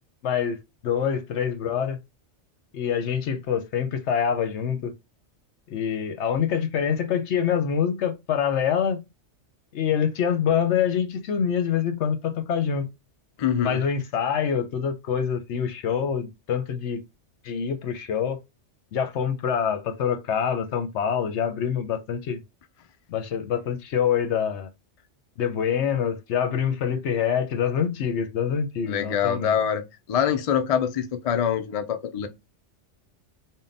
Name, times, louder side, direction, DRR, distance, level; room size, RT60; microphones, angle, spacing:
voice 1, 0.2-0.6 0.8-2.0 2.7-4.9 5.7-9.0 9.7-12.9 13.6-17.0 17.4-18.4 18.9-22.4 23.1-24.7 25.4-29.5, left 8 dB, 75° left, 1.0 m, -25 dB
voice 2, 13.4-13.8 28.8-29.8 30.1-32.3, left 8 dB, 50° left, 0.4 m, -24 dB
3.6 x 2.2 x 3.9 m
omnidirectional pair, 1.2 m